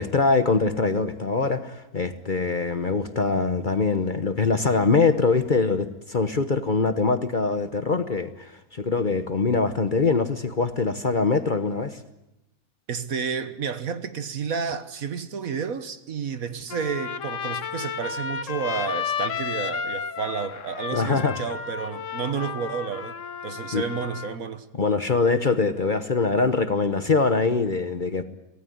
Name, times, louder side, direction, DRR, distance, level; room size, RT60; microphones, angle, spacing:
voice 1, 0.0-12.0 20.9-21.4 23.7-23.8 24.7-28.2, left 4 dB, 35° left, 1.0 m, -23 dB
voice 2, 12.9-23.2 23.4-24.6, right 6 dB, 65° right, 1.7 m, -31 dB
Trumpet, 16.7-24.4, left 7 dB, 60° left, 1.4 m, -32 dB
25.0 x 17.5 x 9.5 m
omnidirectional pair, 1.6 m